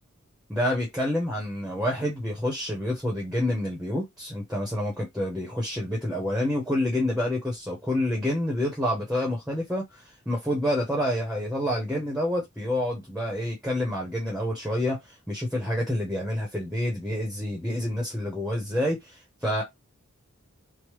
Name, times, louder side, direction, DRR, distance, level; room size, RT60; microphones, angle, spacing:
voice 1, 0.5-19.6, left 1 dB, 5° right, 0.7 m, -28 dB
3.1 x 2.1 x 3.0 m
head